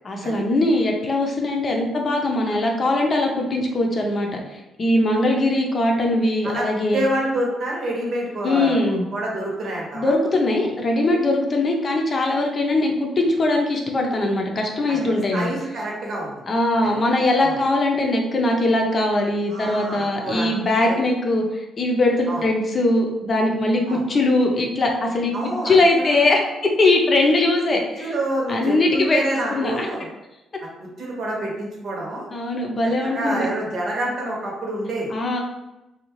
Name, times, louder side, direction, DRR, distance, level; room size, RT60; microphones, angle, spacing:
voice 1, 0.0-7.0 8.4-9.1 9.9-15.5 16.5-25.3 25.6-26.4 26.8-28.1 28.5-29.2 29.5-29.9 32.3-33.5 35.1-35.4, left 2 dB, 40° left, 1 dB, 0.6 m, -21 dB
voice 2, 6.4-10.1 14.9-16.5 16.8-16.9 17.4-17.6 19.5-21.0 22.3-22.4 23.9-24.0 25.3-26.1 28.0-30.1 30.8-32.2 32.8-35.1, right 1 dB, 60° right, -2 dB, 0.9 m, -28 dB
2.6 x 2.3 x 3.0 m, 0.96 s
cardioid pair, 90°, 0 cm